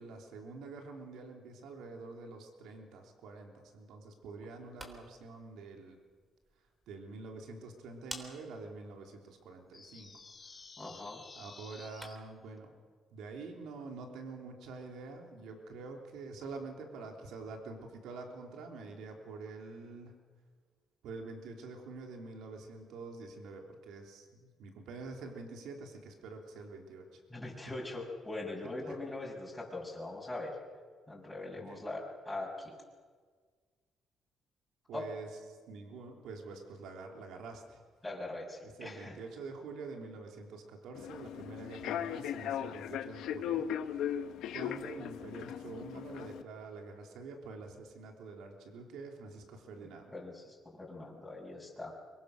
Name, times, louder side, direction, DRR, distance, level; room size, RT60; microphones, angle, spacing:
voice 1, 0.0-6.0 6.9-10.1 11.3-12.7 13.1-20.2 21.0-27.2 27.7-27.8 28.8-29.0 31.5-31.8 34.9-35.3 35.7-37.8 38.6-44.0 44.5-50.1, right 3 dB, 85° right, 2 dB, 3.4 m, -46 dB
sound 1, 4.5-12.4, equal, 15° right, 3.7 m, -54 dB
sound 2, 9.7-12.2, left 4 dB, 35° left, 1.7 m, -52 dB
voice 2, 10.8-11.2 27.3-30.5 31.1-32.7 34.9-35.1 38.0-39.1 50.1-51.9, left 2 dB, 10° left, -3 dB, 6.6 m, -41 dB
Human voice / Subway metro underground, 40.9-46.4, left 10 dB, 85° left, 1.0 m, -38 dB
24.5 x 22.5 x 6.6 m, 1.6 s
cardioid pair, 90°, 0 cm